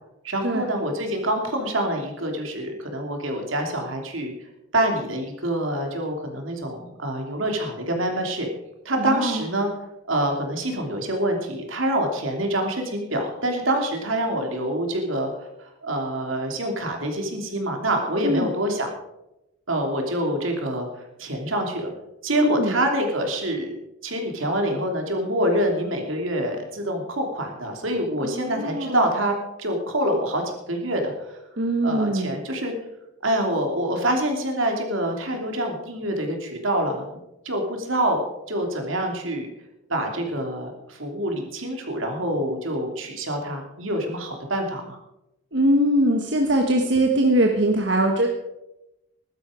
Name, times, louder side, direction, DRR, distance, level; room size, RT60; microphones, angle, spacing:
voice 1, 0.2-4.3 4.7-8.5 8.8-9.7 10.1-15.3 15.6-18.9 19.7-21.9 22.2-23.8 24.0-31.4 31.8-32.7 33.2-37.0 37.4-39.5 39.9-45.0, right 1 dB, 85° right, 3 dB, 3.0 m, -26 dB
voice 2, 9.0-9.4 18.2-18.5 22.3-22.8 28.2-29.0 31.6-32.4 45.5-48.3, right 1 dB, 60° right, 2 dB, 1.4 m, -21 dB
15.0 x 12.5 x 5.1 m, 0.91 s
head